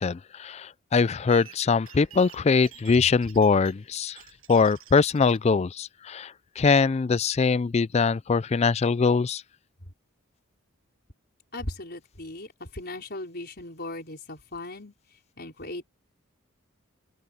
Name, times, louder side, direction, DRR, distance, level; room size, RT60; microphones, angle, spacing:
voice 1, 0.0-4.2 4.5-9.4, left 4 dB, 30° left, 0.3 m, -23 dB
sound 1, 1.3-5.4, right 12 dB, 70° right, 7.0 m, -50 dB
voice 2, 11.5-15.8, left 2 dB, 50° left, 5.1 m, -38 dB
open air
head